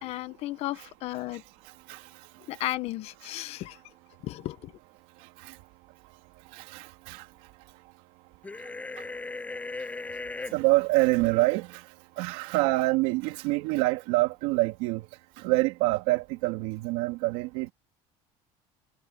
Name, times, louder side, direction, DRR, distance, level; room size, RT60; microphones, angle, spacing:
voice 1, 0.0-1.4 2.5-3.8 4.2-4.7, left 16 dB, 50° left, 1.1 m, -34 dB
voice 2, 1.3-2.6 5.2-5.6 6.5-7.3 8.6-8.7 9.0-9.1 10.4-15.1 15.4-17.7, right 21 dB, 80° right, 2.9 m, -27 dB
sound 1, 8.4-10.5, left 3 dB, 10° left, 6.7 m, -37 dB
cardioid pair, 160°, 13 cm